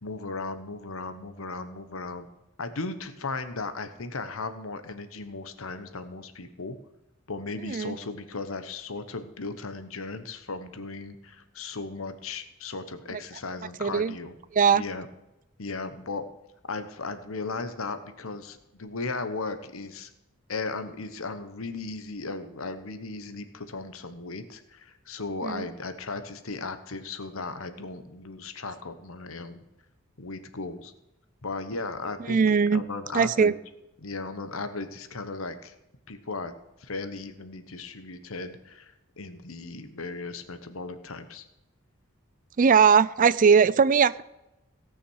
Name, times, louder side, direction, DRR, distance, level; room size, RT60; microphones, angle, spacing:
voice 1, 0.0-2.3 2.6-6.8 7.3-14.3 14.7-15.1 15.6-16.2 16.6-20.1 20.5-29.6 30.2-30.9 31.4-33.5 34.0-35.8 36.1-36.5 36.8-41.4, left 3 dB, 70° left, 10 dB, 1.2 m, -36 dB
voice 2, 7.6-7.9 13.1-13.2 13.8-14.1 14.5-14.8 25.4-25.7 32.3-32.8 33.1-33.5 42.6-44.2, right 6 dB, 40° right, 17 dB, 0.4 m, -20 dB
17.5 x 6.3 x 6.4 m, 0.93 s
head